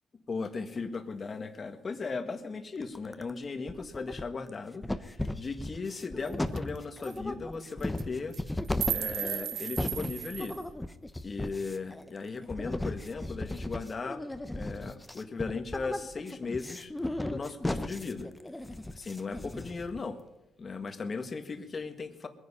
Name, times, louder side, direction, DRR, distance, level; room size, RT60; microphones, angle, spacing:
voice 1, 0.3-8.4 8.9-10.6 11.2-16.9 17.3-18.3 18.9-20.2 20.6-22.3, left 4 dB, 40° left, 8 dB, 1.6 m, -37 dB
sound 1, 3.0-3.4 3.7-4.5 4.8-20.0, left 1 dB, 10° left, 1.0 m, -36 dB
sound 2, 5.9-6.0 6.3-6.4 6.6-6.8 7.0-7.2 7.8-8.0 8.3-10.7, right 11 dB, 80° right, 0.6 m, -35 dB
21.5 x 9.9 x 5.7 m, 0.96 s
cardioid pair, 90°, 0 cm